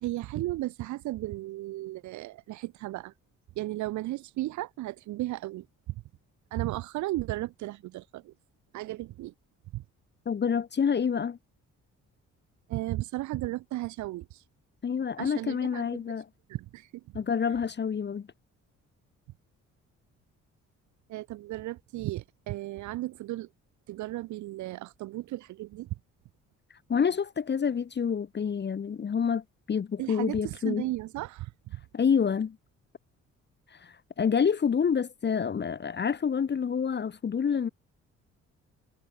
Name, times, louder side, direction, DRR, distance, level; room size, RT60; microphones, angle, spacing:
voice 1, 0.0-3.1 3.6-5.7 6.5-8.3 8.7-9.3 9.7-9.8 12.7-14.4 15.2-16.0 16.5-16.9 17.5-17.6 21.1-23.5 23.9-25.9 30.0-31.8, right 17 dB, 75° right, 0.6 m, -35 dB
voice 2, 10.3-11.4 14.8-16.3 17.1-18.3 26.9-30.8 31.9-32.6 33.7-37.7, left 7 dB, 35° left, 1.0 m, -28 dB
cardioid pair, 90°, 30 cm